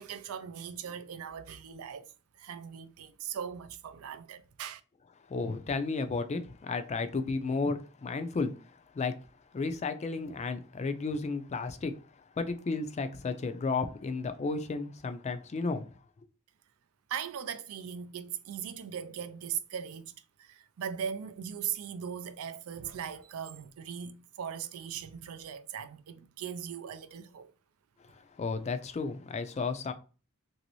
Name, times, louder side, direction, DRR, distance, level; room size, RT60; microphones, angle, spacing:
voice 1, 0.0-2.1 2.4-4.8 17.1-20.1 20.4-27.5, right 8 dB, 75° right, 0.4 m, -39 dB
voice 2, 5.3-8.5 8.9-9.1 9.5-11.9 12.4-15.9 28.4-29.9, left 4 dB, 30° left, 0.4 m, -33 dB
3.0 x 2.6 x 2.9 m
head